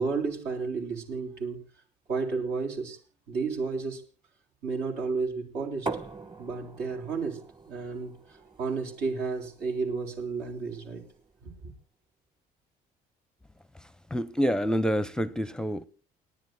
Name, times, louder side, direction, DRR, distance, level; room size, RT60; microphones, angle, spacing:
voice 1, 0.0-1.6 2.1-3.0 3.3-4.0 4.6-5.9 6.4-11.0 11.4-11.5, right 4 dB, 80° right, 3.8 m, -32 dB
sound 1, 5.9-11.5, right 3 dB, 25° right, 1.3 m, -42 dB
voice 2, 13.7-15.9, equal, 5° left, 0.6 m, -28 dB
29.5 x 10.0 x 2.2 m
cardioid pair, 110°, 17 cm